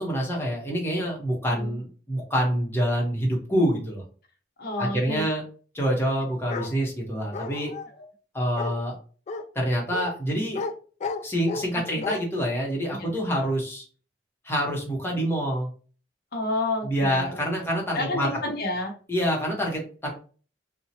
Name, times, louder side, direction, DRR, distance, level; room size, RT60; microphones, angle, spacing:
voice 1, 0.0-4.0 4.8-5.4 5.7-7.7 8.3-8.9 9.5-10.6 11.2-13.8 14.4-15.7 16.8-18.3 19.1-20.1, equal, 15° left, -2 dB, 0.9 m, -26 dB
voice 2, 4.6-5.3 7.9-8.1 11.7-12.0 12.9-13.1 13.4-13.5 16.3-17.5 17.9-18.9, left 2 dB, 60° left, 2 dB, 0.7 m, -30 dB
Bark, 6.5-6.7 7.3-7.9 8.6-8.8 9.3-9.4 9.9-10.1 10.5-10.7 11.0-11.7 12.0-12.2, left 4 dB, 40° left, 0.3 m, -32 dB
2.8 x 2.1 x 2.7 m, 0.39 s
head